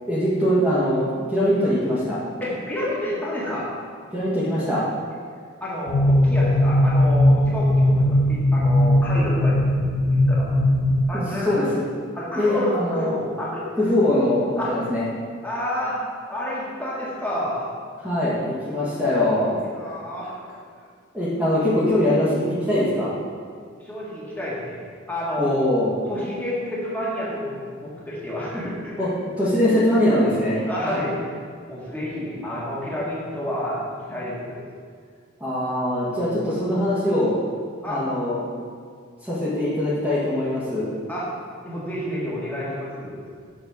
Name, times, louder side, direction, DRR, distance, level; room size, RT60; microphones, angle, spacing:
voice 1, 0.1-2.2 4.1-4.8 11.1-11.8 12.4-13.2 13.8-15.0 18.0-19.6 21.1-23.2 25.4-25.9 29.0-29.1 29.4-30.7 35.4-37.3 37.9-38.6 39.2-40.9, left 1 dB, 5° right, -11 dB, 1.4 m, -22 dB
voice 2, 2.4-3.7 5.6-9.6 10.3-10.5 11.1-11.5 12.2-13.9 14.6-14.7 15.4-16.0 16.3-17.6 18.7-18.9 19.8-20.4 20.8-20.9 23.8-24.8 25.1-25.6 26.1-29.0 30.7-31.3 31.7-33.8 34.1-34.6 37.8-38.0 41.1-41.3 41.5-43.2, left 1 dB, 10° left, -7 dB, 1.7 m, -29 dB
sound 1, 5.9-11.1, left 1 dB, 70° left, 0.4 m, -18 dB
7.0 x 4.3 x 6.2 m, 2.1 s
head